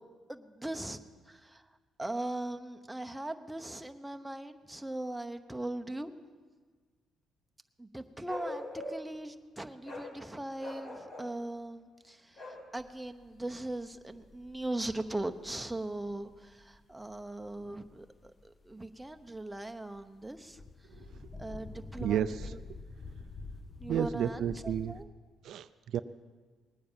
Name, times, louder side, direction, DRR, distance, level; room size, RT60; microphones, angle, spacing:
voice 1, 0.3-1.0 1.3-1.6 2.0-6.1 7.8-20.6 21.4-22.6 23.8-25.1, right 1 dB, 5° right, 7 dB, 0.9 m, -39 dB
Bark, 8.3-9.2 9.8-10.1 10.6-11.3 12.4-12.6, left 2 dB, 55° left, 4.7 m, -41 dB
sound 1, 12.8-25.0, left 3 dB, 35° left, 1.0 m, -48 dB
voice 2, 22.0-22.8 23.9-24.9 25.4-26.0, right 9 dB, 75° right, 12 dB, 0.4 m, -32 dB
20.0 x 9.5 x 7.3 m, 1.5 s
cardioid pair, 90°, 0 cm